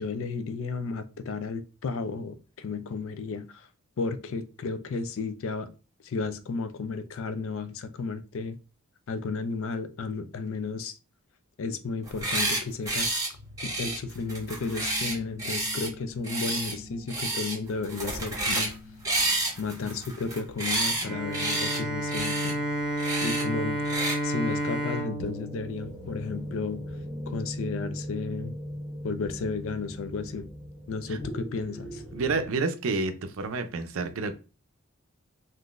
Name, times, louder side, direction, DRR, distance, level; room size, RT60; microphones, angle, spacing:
voice 1, 0.0-3.7 4.0-5.7 6.0-8.6 9.1-11.0 11.6-13.2 13.6-18.7 19.0-19.1 19.6-22.6 23.2-26.8 27.3-28.6 29.0-30.5 30.9-32.0, left 4 dB, 65° left, 0.4 m, -33 dB
sound 1, 12.0-12.6 12.9-13.3 13.6-15.9 16.2-16.7 17.1-17.6 17.8-18.7 19.0-21.0 21.3-21.8 22.1-22.5 23.0-23.4 23.8-24.2, right 2 dB, 15° right, 1.1 m, -29 dB
sound 2, 13.3-32.5, equal, 20° left, 0.9 m, -42 dB
Bowed string instrument, 21.0-26.7, right 1 dB, ahead, 1.7 m, -31 dB
voice 2, 32.1-34.3, right 3 dB, 65° right, 0.5 m, -29 dB
3.8 x 2.5 x 2.4 m
head